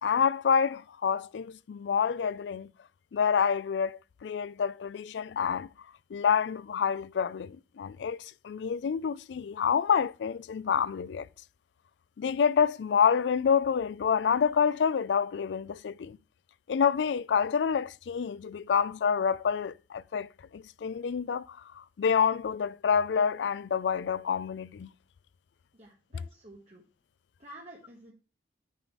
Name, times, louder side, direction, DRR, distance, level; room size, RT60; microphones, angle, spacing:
voice 1, 0.0-2.7 3.1-5.7 6.1-11.3 12.2-16.2 16.7-24.9, left 7 dB, 85° left, 0.4 m, -28 dB
voice 2, 25.7-26.8 27.4-28.1, right 1 dB, 40° right, 1.4 m, -50 dB
9.2 x 4.1 x 4.6 m
head